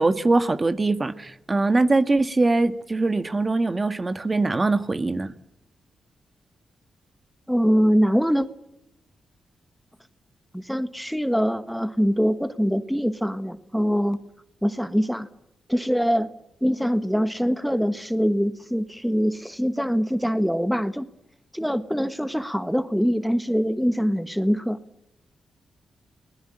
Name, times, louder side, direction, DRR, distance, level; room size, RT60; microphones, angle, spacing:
voice 1, 0.0-5.3, right 3 dB, 30° right, 1.6 m, -22 dB
voice 2, 7.5-8.5 10.5-14.2 14.6-15.3 15.7-16.3 16.6-21.0 21.5-24.8, equal, ahead, 1.4 m, -23 dB
29.0 x 20.0 x 8.9 m
cardioid pair, 70°, 0 cm